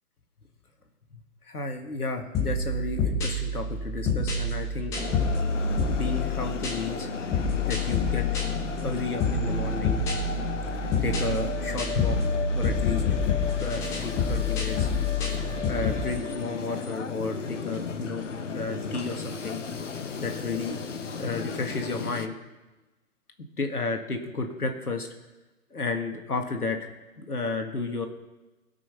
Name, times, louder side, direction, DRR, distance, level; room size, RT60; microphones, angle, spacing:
voice 1, 1.4-5.0 5.9-7.1 7.6-8.3 8.8-10.0 11.0-12.2 12.5-13.3 13.6-14.9 15.4-18.2 18.5-19.6 20.2-20.8 21.1-22.3 23.6-25.1 25.7-26.9 27.2-28.1, left 3 dB, 75° left, 4 dB, 1.8 m, -32 dB
sound 1, 2.3-16.1, left 3 dB, 5° left, 1.0 m, -28 dB
sound 2, 4.9-22.3, left 5 dB, 55° left, 1.1 m, -34 dB
17.5 x 6.2 x 5.8 m, 1.1 s
figure-of-eight pair, 140°, 45 cm